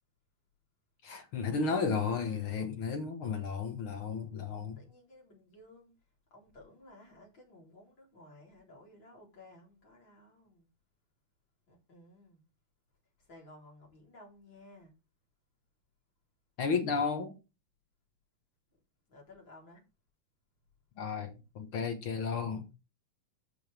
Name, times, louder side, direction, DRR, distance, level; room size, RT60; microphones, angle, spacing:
voice 1, 1.0-4.8 16.6-17.4 21.0-22.7, left 5 dB, 70° left, 1.2 m, -33 dB
voice 2, 4.6-6.0 6.3-10.7 11.7-12.5 13.2-14.9 19.1-19.8, left 1 dB, 30° left, 4.4 m, -56 dB
14.0 x 6.2 x 3.4 m
omnidirectional pair, 4.3 m